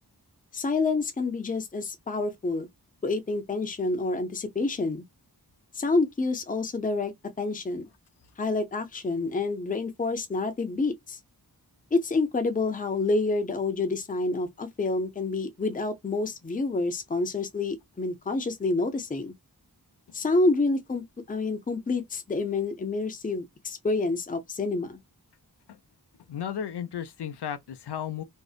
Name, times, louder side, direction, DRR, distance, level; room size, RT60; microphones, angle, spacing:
voice 1, 0.5-2.7 3.0-5.0 5.7-7.9 8.4-11.2 11.9-19.3 20.1-25.0, left 3 dB, 20° left, 0.5 m, -28 dB
voice 2, 26.3-28.2, left 9 dB, 85° left, 0.5 m, -34 dB
2.6 x 2.0 x 2.3 m
wide cardioid pair, 65°, 39 cm